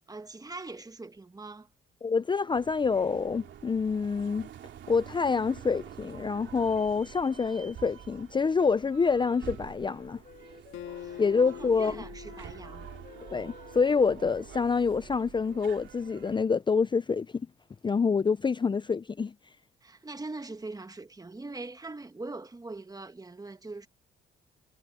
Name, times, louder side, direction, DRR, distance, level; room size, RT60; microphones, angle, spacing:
voice 1, 0.1-1.7 11.0-11.2 11.6-12.9 19.8-23.9, right 3 dB, 20° right, 1.5 m, -42 dB
voice 2, 2.0-4.5 4.9-10.2 11.2-12.0 13.3-17.5 17.8-19.3, left 5 dB, 25° left, 0.5 m, -27 dB
sound 1, 2.5-16.4, right 10 dB, 70° right, 3.2 m, -48 dB
Wind instrument woodwind instrument, 8.7-11.7 12.2-15.7, left 6 dB, 45° left, 3.0 m, -55 dB
Acoustic guitar, 10.7-14.1, left 11 dB, 85° left, 3.2 m, -45 dB
cardioid pair, 90°, 20 cm